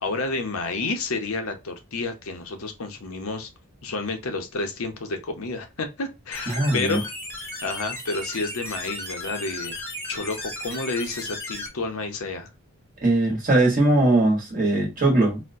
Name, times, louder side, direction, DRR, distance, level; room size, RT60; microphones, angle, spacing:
voice 1, 0.0-3.5 3.8-7.1 7.6-9.8 10.1-12.5, left 3 dB, 90° left, 0.8 m, -30 dB
sound 1, 6.3-11.7, left 1 dB, 10° left, 0.9 m, -35 dB
voice 2, 6.5-7.0 13.0-15.5, right 2 dB, 40° right, 1.2 m, -20 dB
4.2 x 2.2 x 2.6 m
head